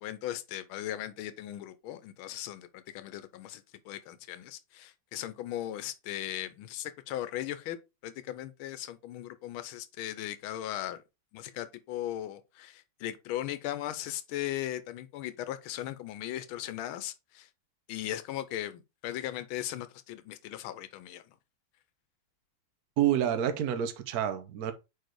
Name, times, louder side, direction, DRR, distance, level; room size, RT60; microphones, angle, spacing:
voice 1, 0.0-7.8 8.0-11.0 11.3-17.5 17.9-21.3, left 13 dB, 90° left, 1.5 m, -38 dB
voice 2, 23.0-24.7, right 10 dB, 60° right, 1.0 m, -28 dB
4.7 x 4.7 x 4.5 m
omnidirectional pair, 2.2 m